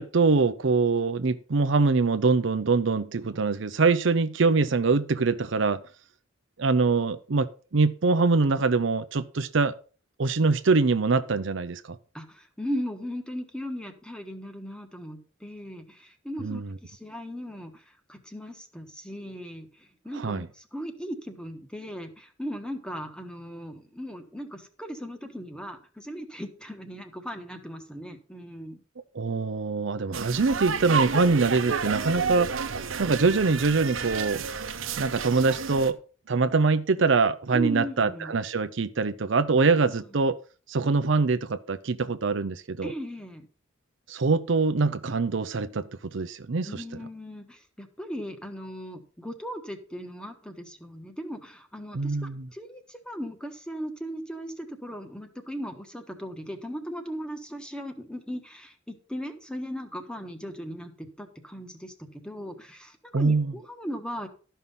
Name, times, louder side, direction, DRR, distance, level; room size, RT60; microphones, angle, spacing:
voice 1, 0.0-5.8 6.6-7.5 7.7-9.7 10.2-12.0 16.4-16.8 20.2-20.5 29.1-32.5 33.0-34.4 35.0-36.0 36.3-40.4 40.7-42.9 44.1-45.9 46.1-46.7 51.9-52.5 63.1-63.5, right 4 dB, 65° right, 0.6 m, -24 dB
voice 2, 12.1-28.8 37.5-38.4 39.6-40.0 42.8-43.5 46.6-64.3, equal, 5° left, 1.3 m, -38 dB
sound 1, 30.1-35.9, right 5 dB, 85° right, 0.9 m, -31 dB
12.5 x 5.6 x 5.5 m
head